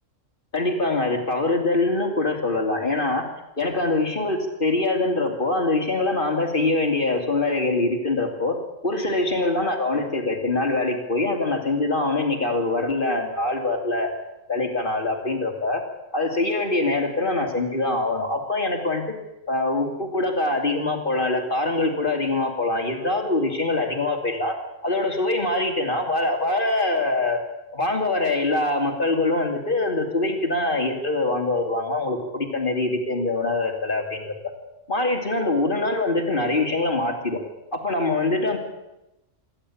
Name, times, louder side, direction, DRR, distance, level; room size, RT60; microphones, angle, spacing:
voice 1, 0.5-3.2 3.6-8.6 8.8-14.1 14.5-15.8 16.1-19.0 19.5-24.6 24.8-27.4 27.7-34.3 34.9-37.4 37.7-38.6, left 2 dB, 40° left, 3 dB, 3.1 m, -24 dB
27.0 x 12.0 x 8.6 m, 0.94 s
omnidirectional pair, 1.3 m